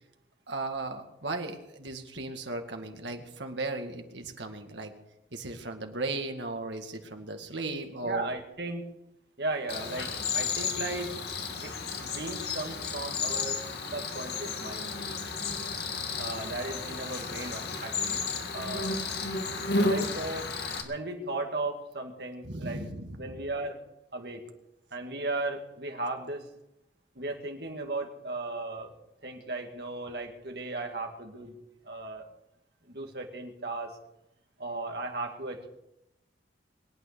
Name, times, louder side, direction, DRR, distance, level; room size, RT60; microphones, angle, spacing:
voice 1, 0.5-4.9 5.3-8.3 22.4-23.4, right 2 dB, 75° right, 4 dB, 2.0 m, -36 dB
voice 2, 8.0-8.9 9.4-11.1 11.6-11.7 12.0-13.6 13.9-14.9 16.2-18.2 18.5-18.9 19.9-20.5 20.8-22.8 23.2-23.8 24.1-24.4 24.9-26.5 27.2-28.9 29.2-31.5 31.8-32.2 32.9-34.0 34.6-35.7, right 2 dB, 55° right, 3 dB, 2.3 m, -36 dB
Cricket, 9.7-20.8, left 4 dB, 60° left, 2.0 m, -33 dB
22.0 x 9.2 x 6.8 m, 0.89 s
head